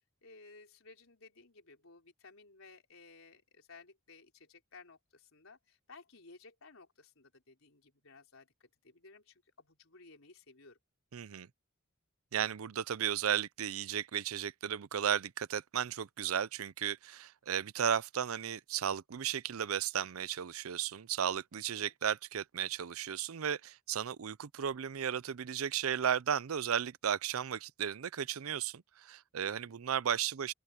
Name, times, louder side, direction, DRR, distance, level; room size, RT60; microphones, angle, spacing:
voice 1, 0.2-10.8 21.7-21.9 29.4-29.8, left 3 dB, 75° left, 4.0 m, -57 dB
voice 2, 11.1-11.5 12.3-30.5, right 8 dB, 85° right, 0.5 m, -34 dB
open air
head